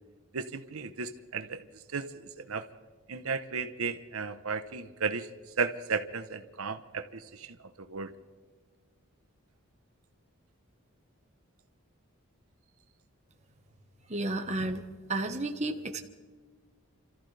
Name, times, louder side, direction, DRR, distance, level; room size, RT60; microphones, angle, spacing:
voice 1, 0.3-1.6 1.9-2.1 2.5-2.6 3.1-5.3 5.6-8.1, right 5 dB, 80° right, 9 dB, 0.9 m, -34 dB
voice 2, 14.1-14.8 15.1-16.0, right 2 dB, 30° right, 5 dB, 1.2 m, -32 dB
29.5 x 14.0 x 3.4 m, 1.4 s
head